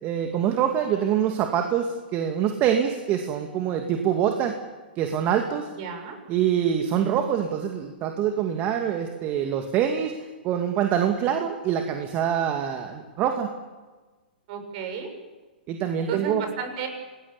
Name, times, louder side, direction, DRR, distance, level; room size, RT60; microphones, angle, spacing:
voice 1, 0.0-4.6 5.0-5.7 6.3-10.1 10.4-13.5 15.7-16.4, right 9 dB, 30° right, 4 dB, 2.2 m, -25 dB
voice 2, 5.8-6.2 14.5-15.1 16.1-16.9, right 6 dB, 45° right, 6 dB, 6.7 m, -33 dB
27.5 x 20.0 x 7.2 m, 1.3 s
hypercardioid pair, 120°, 5 cm